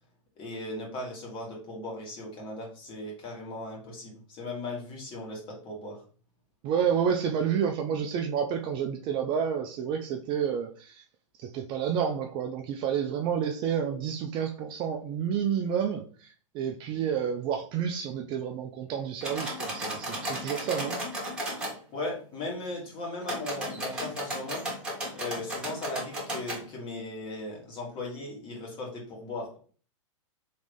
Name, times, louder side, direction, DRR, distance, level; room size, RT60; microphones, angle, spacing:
voice 1, 0.4-6.0 21.9-24.6 25.2-29.6, left 2 dB, 30° left, 1.7 m, -37 dB
voice 2, 6.6-11.0 11.4-21.0, right 8 dB, 30° right, 0.4 m, -30 dB
sound 1, 19.2-21.7 23.2-26.6, equal, 5° right, 1.4 m, -34 dB
3.8 x 3.1 x 3.4 m
hypercardioid pair, 135°, 17 cm